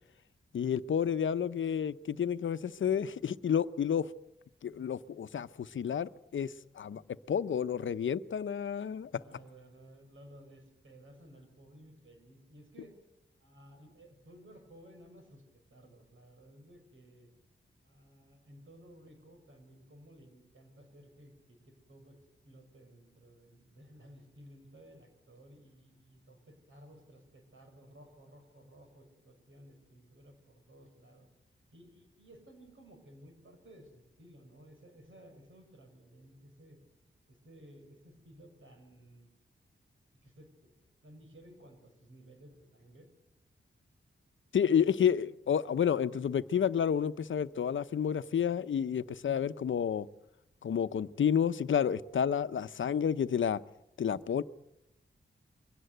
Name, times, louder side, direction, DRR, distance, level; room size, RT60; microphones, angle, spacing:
voice 1, 0.5-4.1 4.6-7.0 7.3-9.1 44.5-50.1 50.6-53.6 54.0-54.4, left 8 dB, 80° left, 13 dB, 0.7 m, -30 dB
voice 2, 9.1-12.9 13.4-15.4 15.7-17.3 17.8-31.3 31.7-36.8 37.3-39.3 40.2-43.1, right 1 dB, 80° right, 5 dB, 6.1 m, -56 dB
23.0 x 18.0 x 8.0 m, 0.82 s
wide cardioid pair, 100°, 20 cm